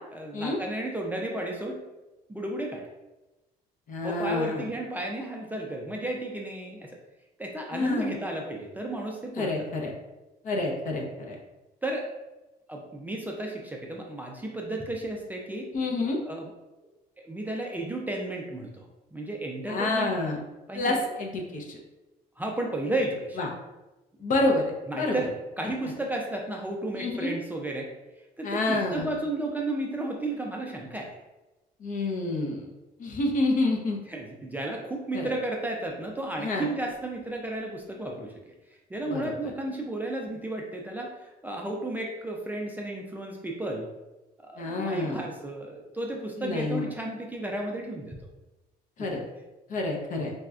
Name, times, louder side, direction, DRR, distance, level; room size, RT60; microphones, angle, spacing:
voice 1, 0.1-1.8 2.3-2.9 4.0-7.0 7.4-9.7 11.8-12.1 12.7-15.7 16.2-16.5 17.2-20.1 20.7-21.0 22.4-23.4 24.9-25.3 25.6-27.9 28.4-31.2 34.1-38.5 38.9-43.9 44.4-48.2 49.0-49.1, right 1 dB, 10° right, 0 dB, 0.4 m, -33 dB
voice 2, 3.9-4.7 7.7-8.1 9.4-9.9 10.4-11.4 15.7-16.2 19.7-20.4 20.7-21.8 23.4-23.5 24.2-25.2 26.9-27.3 28.4-29.1 31.8-32.7 33.0-34.0 35.1-35.2 36.4-36.7 39.1-39.3 44.6-45.2 46.4-46.9 49.0-49.2 49.7-50.3, left 2 dB, 50° left, 0 dB, 0.7 m, -28 dB
4.1 x 2.2 x 2.4 m, 1.1 s
cardioid pair, 110°, 17 cm